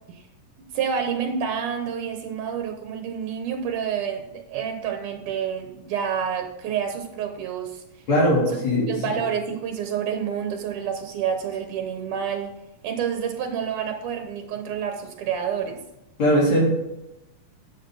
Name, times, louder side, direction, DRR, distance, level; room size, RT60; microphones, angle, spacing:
voice 1, 0.6-7.8 8.9-12.5 12.8-15.8, right 7 dB, 80° right, 5 dB, 2.6 m, -28 dB
voice 2, 8.1-8.9 16.2-16.7, equal, 55° left, -5 dB, 4.8 m, -19 dB
12.0 x 8.6 x 4.0 m, 0.90 s
omnidirectional pair, 3.6 m